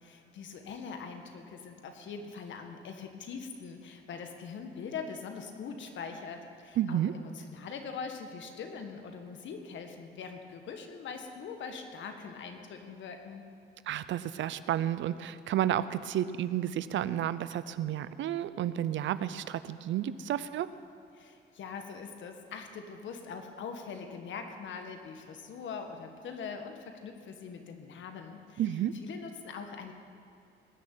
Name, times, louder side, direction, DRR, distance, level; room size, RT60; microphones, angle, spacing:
voice 1, 0.0-13.4 21.1-29.9, left 5 dB, 70° left, 5 dB, 1.7 m, -42 dB
voice 2, 6.8-7.1 13.9-20.7 28.6-29.0, right 11 dB, 70° right, 14 dB, 0.6 m, -31 dB
19.5 x 6.5 x 9.1 m, 2.5 s
cardioid pair, 90°, 20 cm